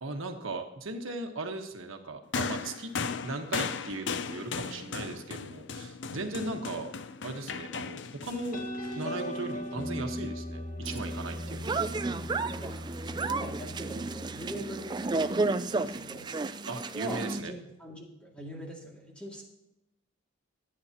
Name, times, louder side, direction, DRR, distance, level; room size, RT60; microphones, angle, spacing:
voice 1, 0.0-2.9 3.2-6.9 7.2-8.6 8.9-11.7 16.7-17.5, right 2 dB, 80° right, 4 dB, 1.3 m, -37 dB
sound 1, 2.3-9.8 10.8-11.0, left 5 dB, 55° left, 0.5 m, -37 dB
sound 2, 8.3-15.5, left 1 dB, 40° left, 1.5 m, -39 dB
sound 3, 10.9-17.4, right 3 dB, 20° right, 0.3 m, -33 dB
voice 2, 11.5-12.2 12.5-12.8 13.0-16.3 16.9-19.4, right 1 dB, 5° left, -2 dB, 2.3 m, -43 dB
23.5 x 8.7 x 2.9 m, 0.89 s
head